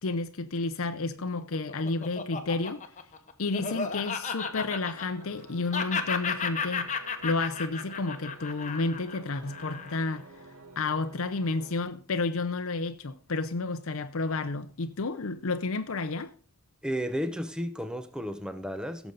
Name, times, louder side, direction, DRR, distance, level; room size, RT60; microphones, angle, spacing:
voice 1, 0.0-2.8 3.4-6.9 7.2-10.3 10.8-16.3, left 3 dB, 70° left, 0.7 m, -31 dB
Laughter, 1.2-5.4 5.7-10.2, left 5 dB, 35° left, 1.1 m, -34 dB
sound 1, 4.4-11.8, right 1 dB, 75° right, 1.4 m, -50 dB
voice 2, 16.8-19.1, equal, 5° right, 0.8 m, -33 dB
16.5 x 7.1 x 4.0 m
head